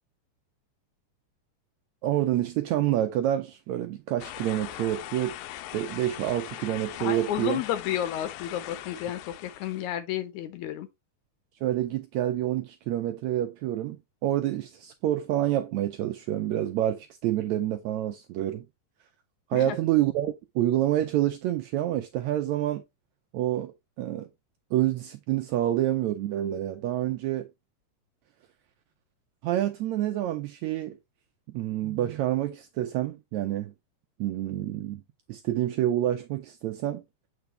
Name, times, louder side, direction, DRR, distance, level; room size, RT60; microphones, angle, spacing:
voice 1, 2.0-5.4 5.7-7.6 11.6-18.6 19.5-22.8 23.3-24.3 24.7-27.5 29.4-31.0 31.5-33.7 34.2-35.0 35.3-37.0, right 13 dB, 80° right, 1.6 m, -28 dB
sound 1, 4.2-9.9, left 14 dB, 90° left, 2.3 m, -41 dB
voice 2, 7.0-10.9 19.5-19.8, left 11 dB, 75° left, 2.0 m, -32 dB
7.9 x 4.5 x 3.1 m
omnidirectional pair, 3.8 m